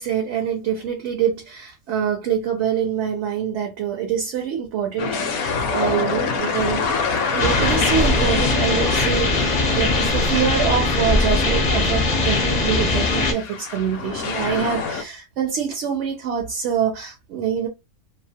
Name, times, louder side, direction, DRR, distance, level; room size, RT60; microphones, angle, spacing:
voice 1, 0.0-6.9 7.2-17.7, right 8 dB, 65° right, 0.8 m, -25 dB
sound 1, 5.0-11.5 12.0-12.1 12.9-15.0, left 5 dB, 80° left, 1.0 m, -27 dB
sound 2, 7.4-13.3, left 2 dB, 50° left, 0.5 m, -20 dB
2.7 x 2.1 x 2.6 m
omnidirectional pair, 1.5 m